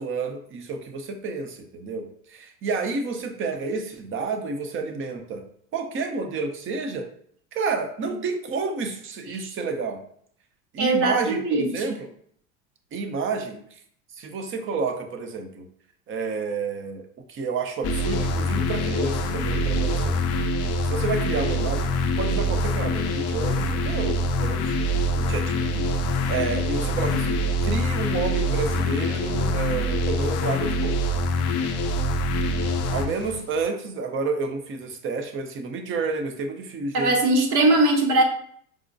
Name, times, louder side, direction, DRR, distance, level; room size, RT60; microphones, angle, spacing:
voice 1, 0.0-5.4 5.7-7.1 7.5-10.0 10.7-12.1 12.9-13.6 14.2-15.7 16.1-20.2 20.6-25.9 26.3-30.9 32.9-37.1, right 4 dB, 30° right, 7 dB, 0.6 m, -30 dB
voice 2, 10.8-11.9 36.9-38.2, right 2 dB, 45° right, 2 dB, 1.0 m, -20 dB
sound 1, 17.8-33.4, left 1 dB, 40° left, 0.5 m, -25 dB
4.9 x 2.1 x 2.6 m, 0.63 s
supercardioid pair, 100°, 41 cm